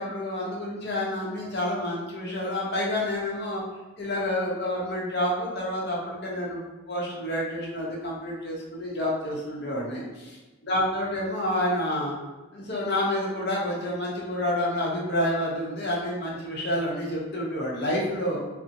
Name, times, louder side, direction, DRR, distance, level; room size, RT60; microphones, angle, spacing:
voice 1, 0.0-3.6 4.0-12.1 12.5-18.4, left 1 dB, 50° left, -4 dB, 0.7 m, -29 dB
2.7 x 2.1 x 2.5 m, 1.1 s
head